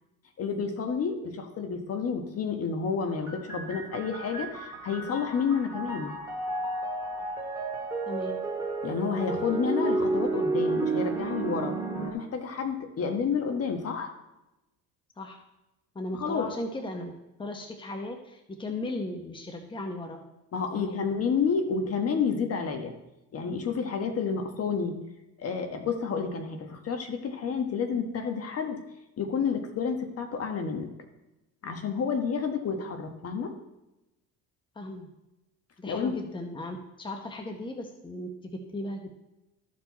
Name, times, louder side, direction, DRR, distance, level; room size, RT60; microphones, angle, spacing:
voice 1, 0.4-6.1 8.8-11.7 12.1-14.1 16.1-16.5 20.5-22.9 23.3-25.0 25.4-28.8 29.2-30.9 31.6-33.5 35.8-36.2, left 6 dB, 45° left, 5 dB, 1.4 m, -30 dB
sound 1, 3.3-12.1, right 3 dB, 10° right, 2.1 m, -31 dB
voice 2, 8.1-8.4 10.8-11.4 11.9-12.1 15.2-15.4 15.9-20.2 20.7-21.0 34.7-35.1 35.8-39.1, left 2 dB, 15° left, 4 dB, 1.1 m, -37 dB
14.0 x 4.8 x 4.2 m, 0.94 s
supercardioid pair, 100°, 33 cm